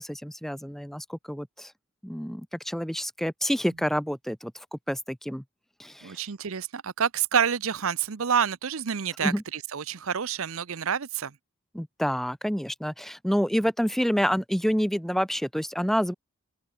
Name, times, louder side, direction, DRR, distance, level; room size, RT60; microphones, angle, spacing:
voice 1, 0.0-1.7 2.0-5.4 5.8-6.2 9.2-9.4 11.7-16.1, equal, ahead, 2.4 m, -28 dB
voice 2, 6.0-11.3, right 7 dB, 65° right, 0.7 m, -28 dB
head